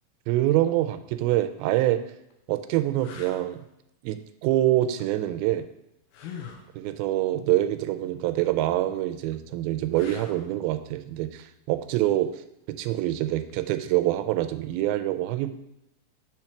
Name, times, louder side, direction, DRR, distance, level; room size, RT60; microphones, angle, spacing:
voice 1, 0.3-2.0 2.5-3.6 4.0-5.7 6.8-12.3 12.7-15.5, right 14 dB, 85° right, 10 dB, 2.4 m, -25 dB
sound 1, 1.6-1.7 2.3-2.4 3.0-3.5 6.1-6.7 9.9-10.5 13.5-13.7, left 7 dB, 85° left, 2.6 m, -42 dB
6.3 x 4.4 x 5.8 m, 0.82 s
omnidirectional pair, 4.3 m